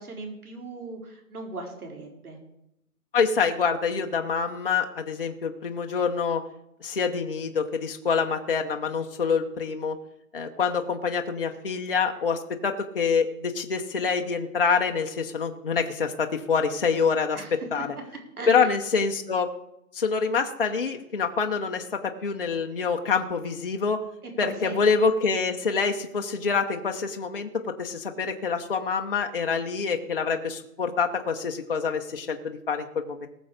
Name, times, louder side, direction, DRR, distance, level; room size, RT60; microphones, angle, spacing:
voice 1, 0.0-2.4 17.3-17.8 18.4-18.7 24.2-24.8, right 3 dB, 70° right, 2 dB, 4.6 m, -38 dB
voice 2, 3.1-6.4 6.8-10.0 10.3-17.4 17.7-17.9 18.5-19.5 19.9-24.0 24.4-33.3, left 5 dB, 40° left, 3 dB, 0.8 m, -26 dB
19.5 x 7.1 x 5.0 m, 0.81 s
hypercardioid pair, 175°, 45 cm